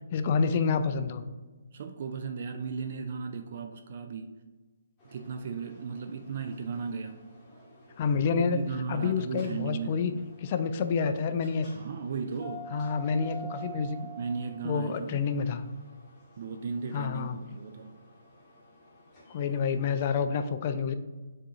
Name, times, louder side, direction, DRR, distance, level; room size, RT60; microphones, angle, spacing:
voice 1, 0.1-1.2 8.0-8.6 8.9-10.1 10.4-11.7 12.7-14.1 14.6-15.6 16.9-17.4 19.3-20.9, left 5 dB, 35° left, 9 dB, 0.3 m, -28 dB
voice 2, 1.7-4.4 5.1-7.2 8.4-10.1 11.7-12.7 14.2-15.2 16.4-17.9, right 5 dB, 45° right, 6 dB, 0.3 m, -36 dB
sound 1, 5.0-19.9, right 2 dB, 20° left, 1.2 m, -50 dB
7.2 x 2.7 x 2.4 m, 1.3 s
figure-of-eight pair, 140°, 0 cm